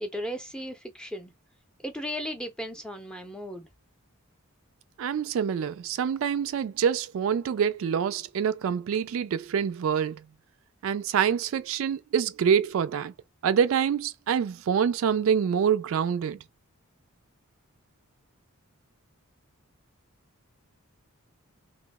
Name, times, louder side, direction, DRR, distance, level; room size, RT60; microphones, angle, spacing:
voice 1, 0.0-1.3 1.8-3.7, equal, 5° left, 0.6 m, -36 dB
voice 2, 5.0-10.2 10.8-13.1 13.4-16.4, right 7 dB, 65° right, 0.3 m, -26 dB
3.0 x 2.7 x 3.5 m
head